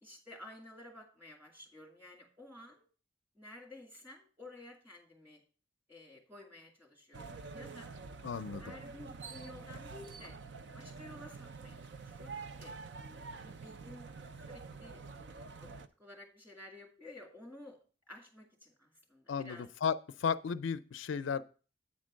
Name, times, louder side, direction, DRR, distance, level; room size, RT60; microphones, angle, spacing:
voice 1, 0.0-2.9 3.3-5.4 5.9-8.0 8.6-10.4 10.7-11.8 12.0-12.8 13.4-14.1 14.4-17.8 18.1-19.7, left 2 dB, 10° right, 0 dB, 2.3 m, -53 dB
sound 1, 7.1-15.9, right 4 dB, 65° right, 0.5 m, -47 dB
voice 2, 8.2-8.6 19.3-21.4, left 6 dB, 85° left, 13 dB, 0.4 m, -34 dB
8.7 x 4.4 x 6.2 m, 0.38 s
head